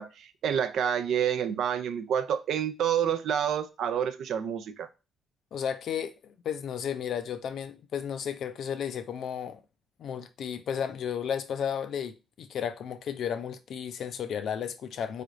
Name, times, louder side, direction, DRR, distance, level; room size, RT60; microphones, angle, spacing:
voice 1, 0.0-4.9, right 8 dB, 75° right, 0.4 m, -28 dB
voice 2, 5.5-9.6 10.0-15.2, left 8 dB, 65° left, 0.4 m, -33 dB
3.8 x 3.3 x 2.5 m
cardioid pair, 90°, 0 cm